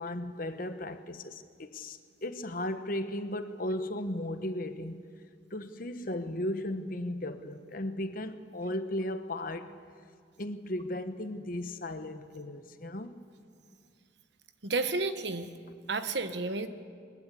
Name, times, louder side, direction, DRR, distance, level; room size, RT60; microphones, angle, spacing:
voice 1, 0.0-5.0 5.5-9.7 10.4-13.2, left 1 dB, 45° left, 1.1 m, -36 dB
voice 2, 14.6-15.5 15.9-16.7, right 3 dB, 60° right, 1.2 m, -31 dB
21.5 x 21.0 x 8.4 m
head